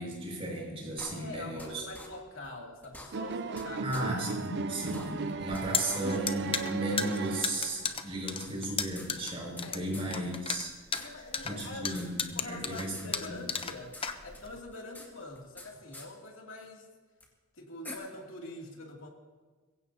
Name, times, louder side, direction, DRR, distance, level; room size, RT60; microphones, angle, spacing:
voice 1, 0.0-1.9 3.8-10.7 11.4-13.6, right 1 dB, 30° right, -2 dB, 5.6 m, -35 dB
sound 1, 1.0-1.7 1.9-2.1 2.4-2.5 2.8-3.6 3.9-4.0 4.4-4.5 4.8-5.6 5.9-6.0 6.4-6.5 7.3-7.4 8.5-9.7 9.9-10.1 10.3-10.4 10.7-11.7 11.9-12.1 12.4-13.1 13.3-14.1 14.3-15.7 15.9-16.1 17.2-17.3 17.8-17.9, left 1 dB, 10° left, 2.1 m, -47 dB
voice 2, 1.1-3.9 9.6-9.8 10.9-11.9 12.3-16.9 17.5-19.1, left 2 dB, 80° left, 0 dB, 2.7 m, -45 dB
sound 2, 3.1-8.0, right 5 dB, 55° right, 0.5 m, -36 dB
sound 3, 5.4-14.6, left 6 dB, 30° left, 0.7 m, -35 dB
22.0 x 16.0 x 2.8 m, 1.4 s
head